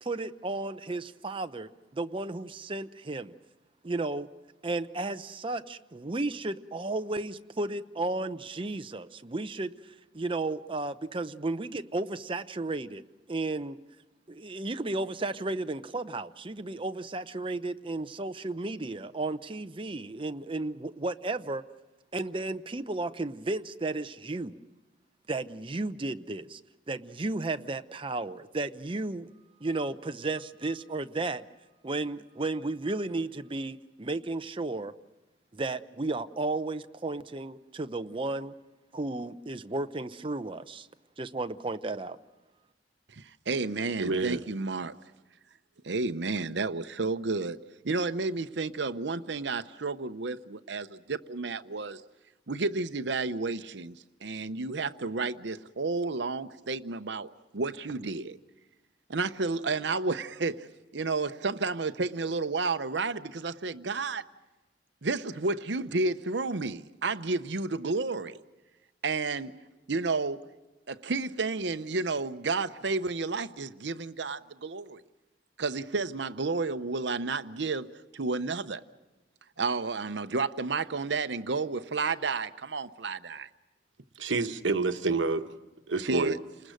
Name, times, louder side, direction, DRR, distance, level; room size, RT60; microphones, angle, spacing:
voice 1, 0.0-3.3 3.8-4.3 4.6-13.0 13.3-13.8 14.3-21.6 22.1-24.6 25.3-26.6 26.9-29.3 29.6-31.5 31.8-34.9 35.5-38.5 38.9-40.9 41.2-42.2, right 2 dB, 30° right, 0.7 m, -33 dB
voice 2, 43.2-44.9 45.8-52.0 52.5-57.3 57.5-58.4 59.1-64.3 65.0-68.4 69.0-69.6 69.9-70.5 70.9-75.0 75.6-78.8 79.6-83.5 86.0-86.4, right 3 dB, 65° right, 0.8 m, -31 dB
voice 3, 44.0-44.4 84.2-85.5 85.9-86.4, right 3 dB, 85° right, 1.1 m, -28 dB
29.5 x 20.0 x 6.4 m
head